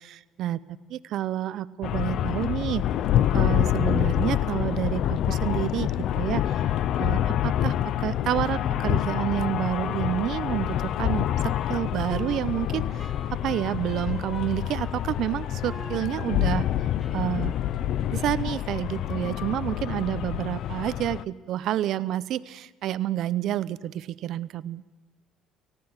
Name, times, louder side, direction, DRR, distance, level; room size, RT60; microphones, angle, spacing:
voice 1, 0.0-2.8 3.3-5.9 6.2-6.7 7.0-16.7 17.1-17.5 18.1-24.8, right 12 dB, 65° right, 16 dB, 0.7 m, -29 dB
sound 1, 1.8-21.2, left 11 dB, 65° left, 0.6 m, -27 dB
Wind instrument woodwind instrument, 10.7-18.1, equal, 10° left, 1.8 m, -47 dB
19.0 x 15.0 x 9.5 m, 1.2 s
supercardioid pair, 75°, 0 cm